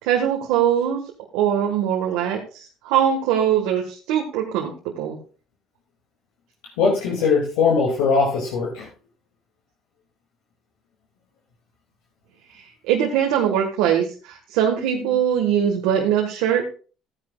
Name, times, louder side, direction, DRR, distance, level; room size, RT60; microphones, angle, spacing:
voice 1, 0.0-1.0 1.3-5.2 12.9-16.6, right 9 dB, 80° right, 1 dB, 1.5 m, -21 dB
voice 2, 6.8-8.9, left 5 dB, 85° left, -3 dB, 2.4 m, -20 dB
14.0 x 10.0 x 2.4 m, 0.38 s
supercardioid pair, 70°, 0 cm